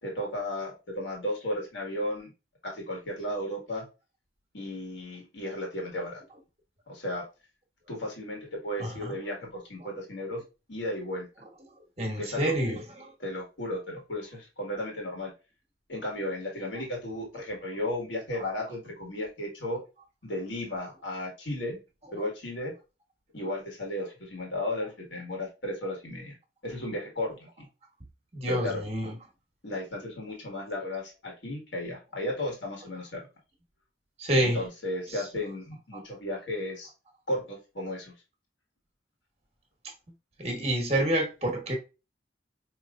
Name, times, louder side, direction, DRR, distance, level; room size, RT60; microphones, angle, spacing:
voice 1, 0.0-2.3 2.6-3.8 4.5-6.2 6.9-7.3 7.9-10.4 10.7-11.3 12.2-12.5 13.2-15.3 15.9-19.8 20.2-21.8 22.1-22.7 23.3-26.3 26.6-27.7 28.5-28.8 29.6-33.3 34.4-36.9 37.3-38.1, left 1 dB, 80° left, 1.6 m, -34 dB
voice 2, 8.8-9.1 12.0-13.1 28.3-29.1 34.2-34.6 40.4-41.7, right 1 dB, 35° right, 1.1 m, -28 dB
4.7 x 3.0 x 2.4 m
head